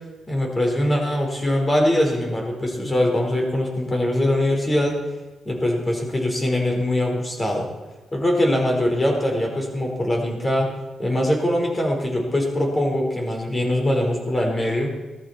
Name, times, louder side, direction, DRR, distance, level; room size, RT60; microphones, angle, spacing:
voice 1, 0.3-5.0 5.4-7.7 8.1-10.7 11.0-14.9, left 1 dB, 25° left, 1 dB, 5.1 m, -22 dB
17.5 x 13.5 x 4.6 m, 1.2 s
cardioid pair, 75°, 0 cm